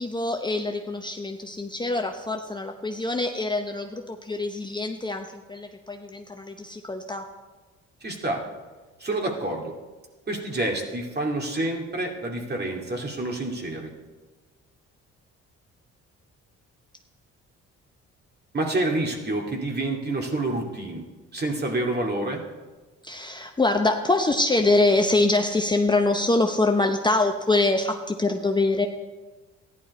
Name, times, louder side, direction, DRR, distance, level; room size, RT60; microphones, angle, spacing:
voice 1, 0.0-7.2 23.0-28.9, left 2 dB, 15° left, 3 dB, 0.8 m, -24 dB
voice 2, 8.0-8.4 9.0-9.7 10.3-13.9 18.5-21.0 21.3-22.4, right 2 dB, 35° right, 1 dB, 2.4 m, -28 dB
14.5 x 11.0 x 4.2 m, 1.3 s
cardioid pair, 90°, 30 cm